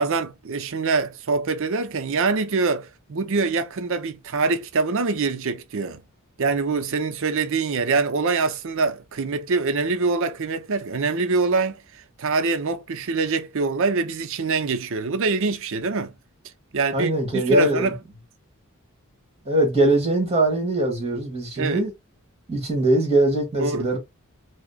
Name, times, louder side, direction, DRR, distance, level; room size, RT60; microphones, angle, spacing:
voice 1, 0.0-6.0 6.4-16.1 16.7-18.0 21.6-21.9 23.6-24.0, right 4 dB, 60° right, 0.6 m, -24 dB
voice 2, 16.9-17.9 19.4-21.9 22.5-24.0, right 1 dB, 25° right, 1.5 m, -21 dB
4.8 x 2.1 x 2.2 m
head